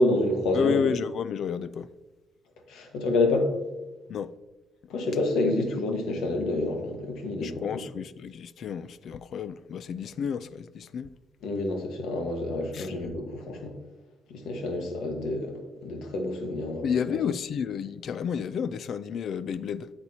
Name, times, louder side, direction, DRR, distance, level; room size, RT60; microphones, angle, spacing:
voice 1, 0.0-0.8 2.7-3.5 4.9-7.8 11.4-13.7 14.3-17.1, left 2 dB, 85° left, 1.4 m, -28 dB
voice 2, 0.5-1.9 4.1-4.3 5.4-5.8 7.4-11.1 12.7-12.9 16.8-19.9, left 7 dB, 65° left, 0.4 m, -31 dB
8.7 x 8.5 x 2.8 m
cardioid pair, 90°, 0 cm